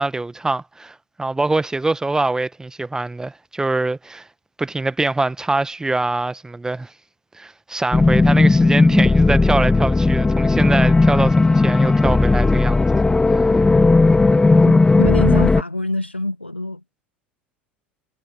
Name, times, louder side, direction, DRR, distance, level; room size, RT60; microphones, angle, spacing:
voice 1, 0.0-4.3 4.6-6.9 7.3-13.0, right 2 dB, 10° right, 1.1 m, -24 dB
sound 1, 7.9-15.6, left 3 dB, 10° left, 1.2 m, -15 dB
voice 2, 14.3-16.8, left 1 dB, 90° left, 1.5 m, -26 dB
figure-of-eight pair, 70°, 6 cm